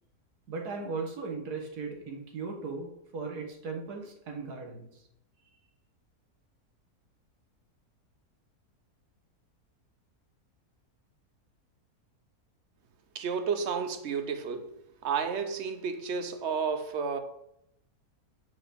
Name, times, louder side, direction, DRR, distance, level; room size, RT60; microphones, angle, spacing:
voice 1, 0.5-4.9, right 4 dB, 90° right, 1.8 m, -37 dB
voice 2, 13.1-14.7 15.0-17.2, right 6 dB, 60° right, 0.8 m, -31 dB
8.2 x 4.7 x 3.4 m
omnidirectional pair, 1.6 m